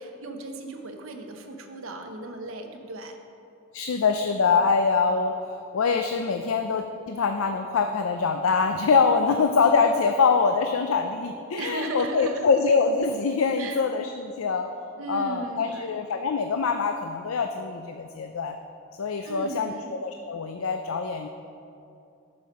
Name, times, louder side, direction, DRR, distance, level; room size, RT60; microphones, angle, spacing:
voice 1, 0.0-3.2 11.5-12.5 13.6-13.8 15.0-15.9 19.2-20.0, right 2 dB, 80° right, 4 dB, 0.9 m, -36 dB
voice 2, 3.7-14.7 15.1-18.6 19.0-19.7 20.0-21.3, left 5 dB, 85° left, 6 dB, 0.5 m, -24 dB
9.6 x 6.6 x 5.3 m, 2.6 s
head